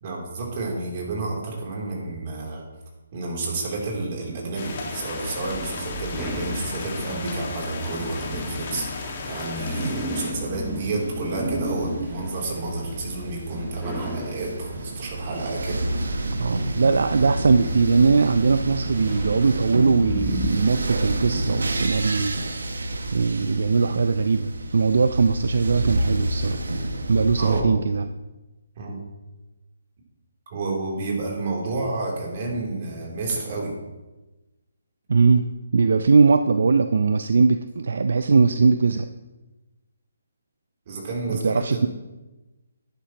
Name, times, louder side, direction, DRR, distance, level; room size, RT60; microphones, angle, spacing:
voice 1, 0.0-2.6 3.1-15.8 27.4-27.8 28.8-29.0 30.5-33.7 40.9-41.9, right 3 dB, 40° right, -2 dB, 3.1 m, -30 dB
sound 1, 4.5-10.3, left 4 dB, 40° left, 1.8 m, -35 dB
sound 2, 4.8-20.9, equal, 5° right, 1.4 m, -35 dB
sound 3, 10.4-27.6, right 1 dB, 85° right, 1.1 m, -30 dB
voice 2, 16.3-22.4 23.1-26.6 27.1-28.1 35.1-35.5 35.7-39.1 41.3-41.9, right 4 dB, 70° right, 9 dB, 0.4 m, -20 dB
11.0 x 10.0 x 2.9 m, 1.1 s
hypercardioid pair, 160°, 0 cm